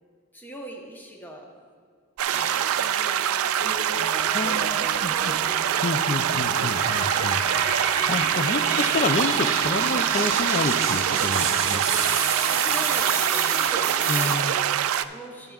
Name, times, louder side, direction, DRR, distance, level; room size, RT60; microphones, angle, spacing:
voice 1, 0.3-1.5 2.7-3.9 4.2-5.2 12.6-15.5, right 1 dB, 10° left, 0 dB, 0.9 m, -41 dB
sound 1, 2.2-15.1, right 10 dB, 85° right, 0.3 m, -24 dB
sound 2, 2.3-3.1 3.6-14.3, right 4 dB, 30° right, 1.3 m, -30 dB
sound 3, 2.9-7.0, left 4 dB, 65° right, 0.8 m, -48 dB
voice 2, 4.3-5.3 5.8-7.4 8.1-11.8 14.1-14.5, left 3 dB, 40° left, 10 dB, 0.4 m, -29 dB
12.5 x 10.5 x 2.4 m, 2.1 s
head